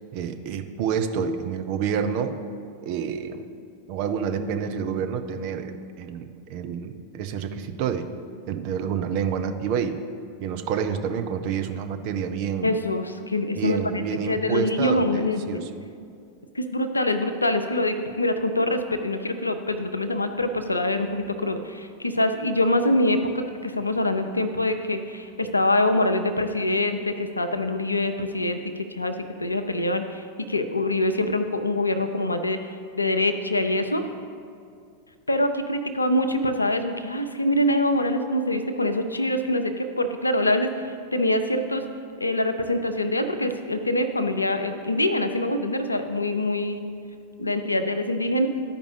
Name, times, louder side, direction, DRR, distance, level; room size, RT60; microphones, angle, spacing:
voice 1, 0.1-2.4 2.8-3.4 3.9-8.1 8.5-10.0 10.4-12.7 13.6-15.7, right 7 dB, 45° right, 7 dB, 0.6 m, -28 dB
voice 2, 12.6-15.7 16.5-34.1 35.3-40.7 41.1-41.8 42.2-46.8 47.4-48.5, left 1 dB, 80° left, 8 dB, 0.5 m, -25 dB
14.0 x 5.1 x 3.3 m, 2.3 s
figure-of-eight pair, 90°, 0 cm